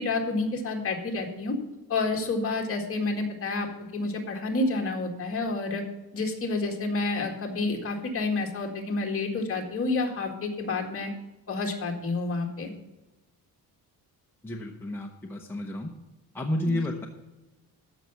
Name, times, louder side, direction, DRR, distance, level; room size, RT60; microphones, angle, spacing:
voice 1, 0.0-1.6 1.9-5.8 6.1-11.1 11.5-12.7 16.7-16.8, left 3 dB, 35° left, 2 dB, 2.0 m, -29 dB
voice 2, 14.4-15.9 16.3-17.1, left 1 dB, 5° left, 0 dB, 0.8 m, -31 dB
14.0 x 5.9 x 6.8 m, 1.1 s
wide cardioid pair, 175°, 37 cm